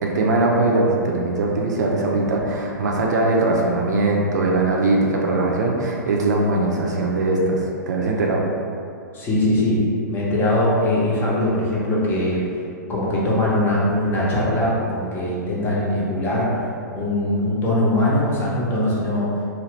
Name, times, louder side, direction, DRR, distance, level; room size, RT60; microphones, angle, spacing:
voice 1, 0.0-8.4, right 2 dB, 65° right, -1 dB, 0.5 m, -21 dB
voice 2, 9.1-9.8 10.1-12.4 12.9-16.5 16.9-19.3, left 1 dB, 20° left, -6 dB, 0.7 m, -21 dB
2.7 x 2.5 x 3.1 m, 2.4 s
figure-of-eight pair, 115°, 10 cm